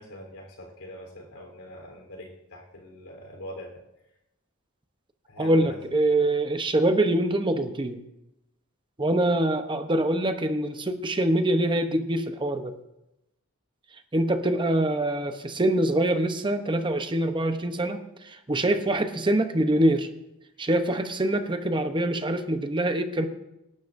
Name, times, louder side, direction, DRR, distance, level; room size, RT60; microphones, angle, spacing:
voice 1, 0.0-3.8 5.3-5.8, left 1 dB, 90° left, 1 dB, 3.7 m, -43 dB
voice 2, 5.4-8.0 9.0-12.7 14.1-20.1 20.6-23.3, right 1 dB, 20° right, 7 dB, 0.8 m, -24 dB
25.5 x 12.0 x 2.6 m, 0.88 s
head